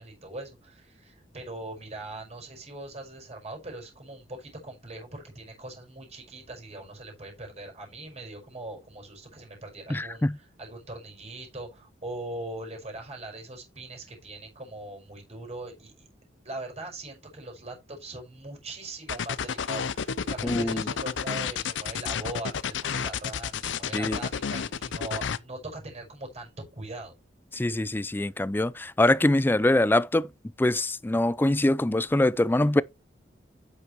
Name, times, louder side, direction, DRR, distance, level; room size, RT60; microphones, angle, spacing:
voice 1, 0.0-16.1 16.4-27.1, right 2 dB, 35° right, 5.3 m, -41 dB
voice 2, 9.9-10.4 20.4-20.9 23.9-24.2 27.5-30.3 30.6-32.8, left 1 dB, 10° left, 0.4 m, -24 dB
sound 1, 19.1-25.4, left 6 dB, 85° left, 0.6 m, -31 dB
9.5 x 7.9 x 3.1 m
head